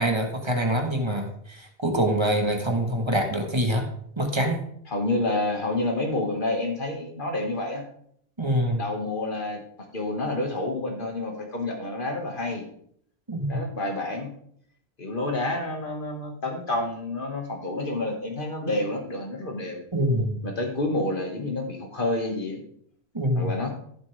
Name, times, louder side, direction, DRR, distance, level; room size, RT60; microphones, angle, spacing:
voice 1, 0.0-3.9 4.2-4.6 8.4-8.8 13.3-13.6 19.9-20.4 23.1-23.5, right 1 dB, 25° right, 3 dB, 1.6 m, -25 dB
voice 2, 4.9-7.8 8.8-9.6 9.9-12.7 13.5-14.3 15.0-19.8 20.4-22.6 23.4-23.7, left 2 dB, 50° left, 2 dB, 2.1 m, -29 dB
15.0 x 7.3 x 3.4 m, 0.66 s
omnidirectional pair, 1.1 m